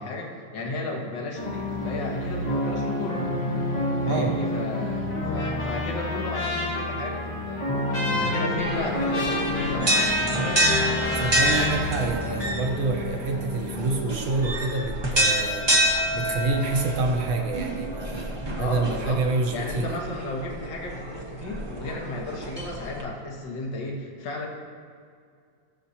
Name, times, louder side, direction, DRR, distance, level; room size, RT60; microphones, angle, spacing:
voice 1, 0.0-3.3 4.1-7.7 8.1-10.6 18.5-19.2 19.5-24.5, left 2 dB, 60° left, -2 dB, 2.0 m, -34 dB
sound 1, 1.4-14.0, left 2 dB, 25° left, 1.0 m, -30 dB
voice 2, 4.0-4.5 11.1-15.7 16.1-20.0, right 3 dB, 80° right, 2 dB, 1.7 m, -27 dB
Trumpet, 5.1-11.8, left 1 dB, 45° left, 1.9 m, -32 dB
sound 2, 8.6-23.0, right 1 dB, 20° right, 0.6 m, -28 dB
18.0 x 6.5 x 2.8 m, 2.2 s
omnidirectional pair, 2.2 m